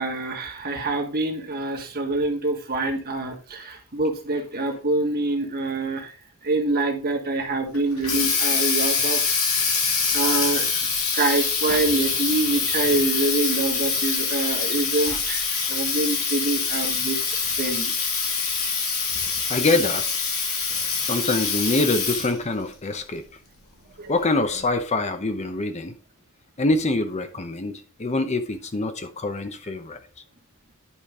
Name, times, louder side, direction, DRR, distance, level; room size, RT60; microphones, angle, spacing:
voice 1, 0.0-6.1 6.4-9.3 10.1-10.7 11.1-17.9 24.0-24.1, right 2 dB, 45° right, 1.5 m, -26 dB
Water tap faucet, 7.7-22.4, left 5 dB, 85° left, 2.8 m, -25 dB
voice 2, 19.5-20.0 21.0-23.2 24.1-25.9 26.6-30.0, left 2 dB, 30° left, 0.7 m, -25 dB
10.0 x 5.1 x 3.6 m
head